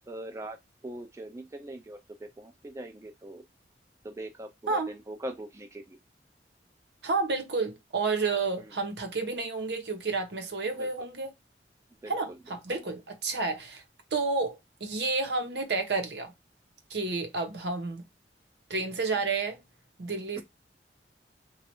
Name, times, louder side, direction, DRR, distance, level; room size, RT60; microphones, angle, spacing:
voice 1, 0.1-0.6 0.8-3.4 4.0-6.0 8.6-8.7 10.7-10.9 12.0-12.4 19.1-19.3 20.4-20.5, right 1 dB, 15° right, 0.3 m, -42 dB
voice 2, 7.0-11.3 12.1-13.8 14.1-16.3 16.9-18.0 18.7-19.6 20.0-20.4, right 3 dB, 70° right, 0.8 m, -30 dB
3.1 x 2.3 x 2.9 m
head